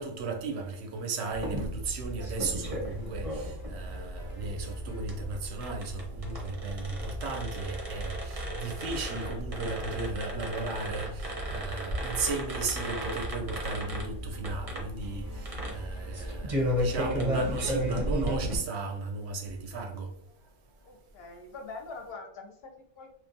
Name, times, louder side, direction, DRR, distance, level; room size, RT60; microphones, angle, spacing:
voice 1, 0.0-20.1, right 4 dB, 70° right, 0.8 m, -35 dB
sound 1, 1.3-18.6, equal, 40° right, 0.6 m, -34 dB
sound 2, 2.6-17.6, left 2 dB, 30° left, 0.3 m, -54 dB
voice 2, 20.8-23.3, left 3 dB, 65° left, 0.7 m, -44 dB
2.9 x 2.2 x 2.5 m
omnidirectional pair, 1.2 m